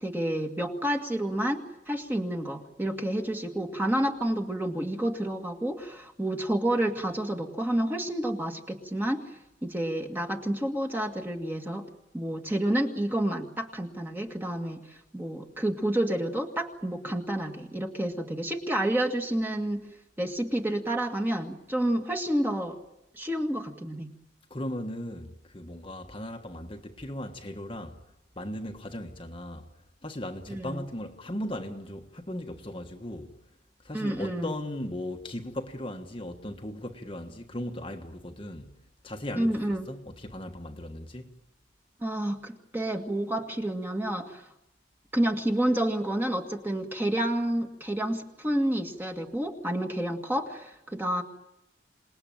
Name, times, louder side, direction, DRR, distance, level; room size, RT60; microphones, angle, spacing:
voice 1, 0.0-9.2 9.6-11.9 12.1-19.8 20.2-22.8 23.1-24.1 30.5-30.8 33.9-34.5 39.4-39.9 42.0-44.4 45.1-51.2, right 1 dB, 10° right, 1.9 m, -29 dB
voice 2, 24.5-28.0 28.4-29.7 30.0-33.3 33.8-39.6 39.9-41.4, left 1 dB, 25° left, 1.4 m, -37 dB
27.5 x 19.5 x 9.1 m
head